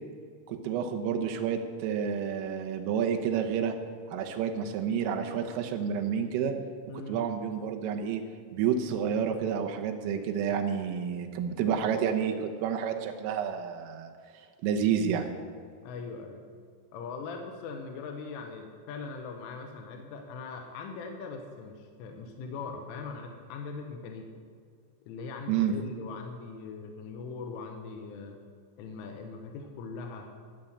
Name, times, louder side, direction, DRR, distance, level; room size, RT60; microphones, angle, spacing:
voice 1, 0.5-3.8 4.1-6.5 7.1-8.2 8.5-14.1 14.6-15.3 25.5-25.8, right 7 dB, 85° right, 4 dB, 3.6 m, -29 dB
voice 2, 6.9-7.2 15.8-16.4 16.9-24.3 25.1-28.4 28.8-30.3, left 4 dB, 80° left, 3 dB, 3.5 m, -40 dB
14.5 x 6.4 x 8.6 m, 2.1 s
omnidirectional pair, 5.8 m